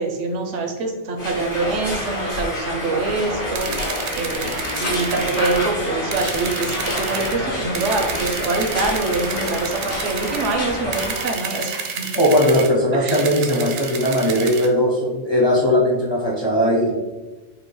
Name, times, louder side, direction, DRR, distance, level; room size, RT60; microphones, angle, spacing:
voice 1, 0.0-12.1 12.9-13.2, right 3 dB, 85° right, 2 dB, 1.0 m, -25 dB
sound 1, 1.2-11.3, left 1 dB, 75° left, 1.6 m, -28 dB
sound 2, 3.6-5.7 6.1-7.4 7.7-10.6 10.9-12.7 13.1-14.7, right 6 dB, 65° right, 0.7 m, -31 dB
voice 2, 12.1-16.9, equal, 40° left, -3 dB, 0.4 m, -18 dB
5.2 x 2.2 x 3.1 m, 1.2 s
omnidirectional pair, 1.2 m